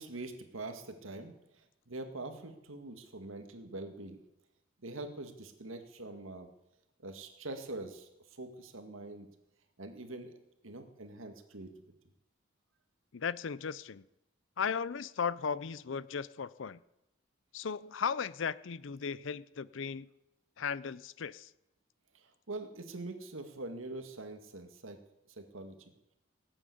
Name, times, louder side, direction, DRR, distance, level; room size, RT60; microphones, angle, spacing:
voice 1, 0.0-4.2 4.8-6.5 7.0-9.3 9.8-10.4 10.6-11.7 22.1-25.0 25.4-25.8, right 2 dB, 85° right, 7 dB, 2.0 m, -44 dB
voice 2, 13.1-14.1 14.6-16.8 17.5-20.1 20.6-21.5, left 6 dB, 70° left, 20 dB, 0.5 m, -36 dB
18.0 x 9.0 x 8.4 m, 0.90 s
head